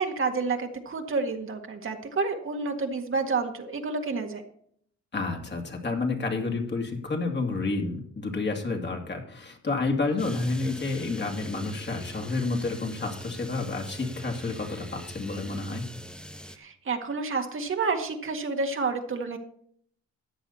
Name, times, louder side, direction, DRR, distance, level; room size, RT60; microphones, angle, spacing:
voice 1, 0.0-4.4 16.6-19.4, right 4 dB, 45° right, 4 dB, 1.7 m, -29 dB
voice 2, 5.1-15.9, left 3 dB, 35° left, 3 dB, 2.6 m, -30 dB
sound 1, 10.2-16.6, equal, 5° left, 0.9 m, -43 dB
14.0 x 9.1 x 4.3 m, 0.64 s
cardioid pair, 90°, 30 cm